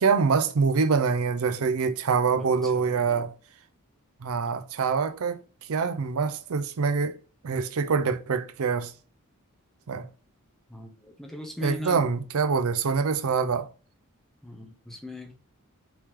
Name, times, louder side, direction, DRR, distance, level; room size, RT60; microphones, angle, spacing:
voice 1, 0.0-3.3 4.2-5.4 5.7-7.2 7.4-8.9 9.9-10.1 11.6-13.7, right 5 dB, 75° right, 0.5 m, -25 dB
voice 2, 2.3-3.3 10.7-12.0 14.4-15.3, left 1 dB, ahead, 0.8 m, -40 dB
4.4 x 3.1 x 3.6 m
head